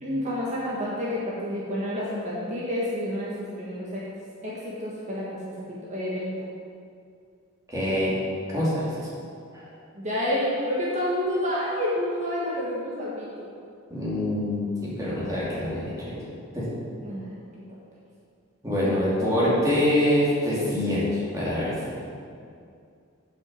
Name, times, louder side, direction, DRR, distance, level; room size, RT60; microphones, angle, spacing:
voice 1, 0.0-4.0 4.4-5.5 5.8-6.4 9.9-13.5 17.0-17.3 18.8-19.0, left 1 dB, 35° right, -6 dB, 1.6 m, -29 dB
voice 2, 7.7-8.1 8.5-9.0 9.5-9.6 13.9-16.2 16.5-16.6 18.6-22.0, left 1 dB, 15° right, -9 dB, 2.9 m, -25 dB
8.2 x 6.1 x 7.7 m, 2.4 s
head